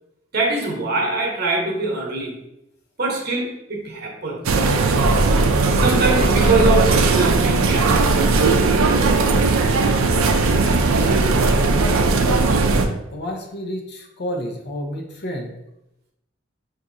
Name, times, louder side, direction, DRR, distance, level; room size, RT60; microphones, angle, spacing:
voice 1, 0.3-2.4 3.0-4.4 5.6-8.6, right 3 dB, 50° right, -1 dB, 1.0 m, -23 dB
sound 1, 4.5-12.9, right 3 dB, 85° right, 0.4 m, -17 dB
voice 2, 10.9-11.2 11.7-15.5, equal, 55° left, 1 dB, 0.7 m, -31 dB
5.9 x 2.6 x 2.6 m, 0.88 s
head